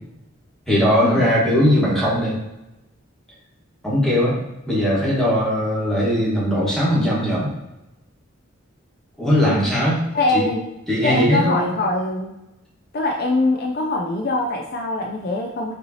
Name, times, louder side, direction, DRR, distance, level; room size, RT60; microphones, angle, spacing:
voice 1, 0.7-2.3 3.8-4.4 4.7-7.5 9.2-10.0 10.3-10.4 10.9-11.7, equal, ahead, -8 dB, 1.4 m, -19 dB
voice 2, 10.1-10.7 11.0-12.3 12.9-15.7, left 2 dB, 50° left, 1 dB, 0.4 m, -23 dB
5.1 x 3.1 x 2.8 m, 0.93 s
head